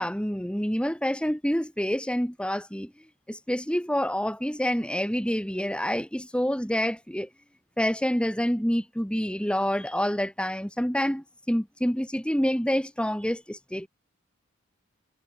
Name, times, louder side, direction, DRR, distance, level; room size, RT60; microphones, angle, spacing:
voice 1, 0.0-2.9 3.3-7.3 7.8-13.9, equal, 5° left, 3.0 m, -27 dB
head